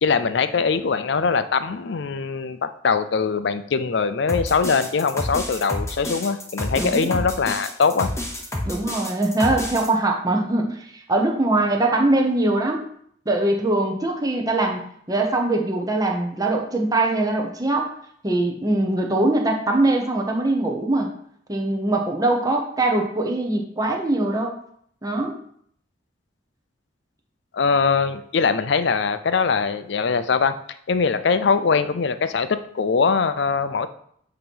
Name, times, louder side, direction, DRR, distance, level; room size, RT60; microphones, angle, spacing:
voice 1, 0.0-8.1 27.5-30.6 30.9-33.9, left 5 dB, 60° left, 11 dB, 0.5 m, -22 dB
sound 1, 4.3-9.9, left 1 dB, 15° left, 0.9 m, -29 dB
voice 2, 6.8-7.1 8.7-12.8 13.3-14.8 15.1-17.9 18.2-21.1 21.5-24.5 25.0-25.4, right 2 dB, 20° right, 1 dB, 0.9 m, -22 dB
8.7 x 3.0 x 5.4 m, 0.65 s
head